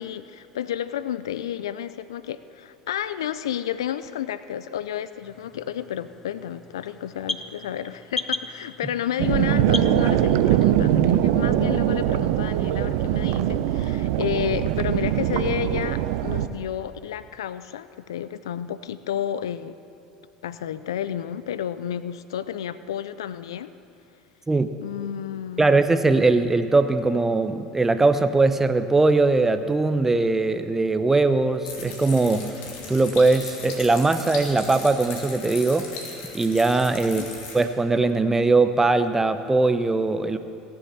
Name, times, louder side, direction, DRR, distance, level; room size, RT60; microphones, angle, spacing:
voice 1, 0.0-19.8 20.4-23.7 24.8-25.7 37.2-37.3, left 10 dB, 85° left, 14 dB, 0.4 m, -31 dB
sound 1, 5.2-10.7, left 2 dB, 15° left, 0.7 m, -36 dB
sound 2, 9.2-16.5, right 12 dB, 70° right, 0.6 m, -22 dB
voice 2, 25.6-32.5 32.9-35.9 36.3-37.2 37.5-40.4, right 3 dB, 15° right, 10 dB, 0.8 m, -20 dB
sound 3, 31.6-37.6, left 4 dB, 65° left, 2.7 m, -38 dB
18.0 x 7.2 x 7.4 m, 2.6 s
hypercardioid pair, 75°, 2 cm